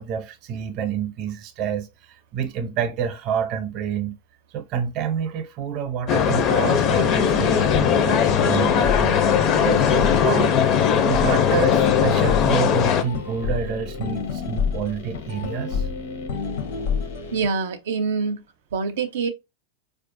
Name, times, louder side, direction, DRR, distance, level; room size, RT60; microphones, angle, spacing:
voice 1, 0.0-4.2 4.5-10.6 11.1-15.9, right 8 dB, 45° right, 0.6 m, -28 dB
sound 1, 6.1-13.0, left 8 dB, 40° left, 0.4 m, -19 dB
sound 2, 7.2-17.5, left 5 dB, 70° left, 0.7 m, -29 dB
voice 2, 17.3-18.4 18.7-19.3, right 5 dB, 90° right, 0.5 m, -25 dB
4.4 x 2.4 x 2.5 m
supercardioid pair, 135°, 0 cm